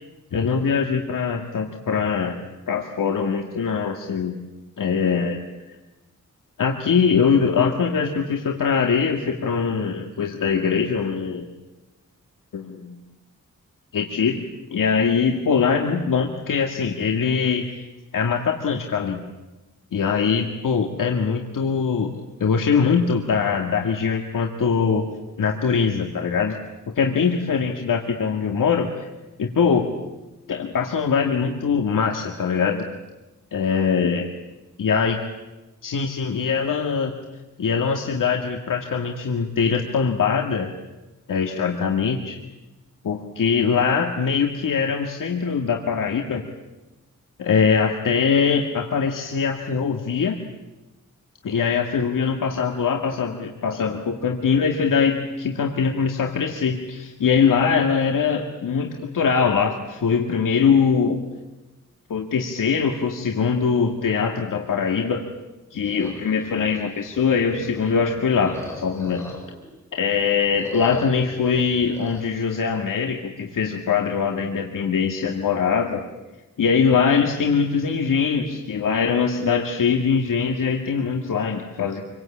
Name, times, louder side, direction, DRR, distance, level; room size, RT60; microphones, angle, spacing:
voice 1, 0.3-2.4 2.7-4.4 4.8-5.4 5.7-5.8 6.6-11.5 12.5-13.0 13.9-14.4 14.7-17.9 18.1-19.2 19.9-22.1 22.4-25.1 25.4-26.6 27.0-29.1 29.4-29.9 30.5-32.9 33.5-34.3 34.8-35.1 35.8-37.1 37.6-40.7 41.3-42.4 43.0-46.4 47.4-50.4 51.4-61.2 62.1-65.3 65.7-69.3 70.0-76.0 76.6-82.0, left 6 dB, 90° left, 3 dB, 2.1 m, -22 dB
sound 1, 65.8-69.7 70.0-72.2, left 1 dB, 10° left, 7.7 m, -40 dB
28.0 x 24.0 x 8.8 m, 1.1 s
wide cardioid pair, 160°, 31 cm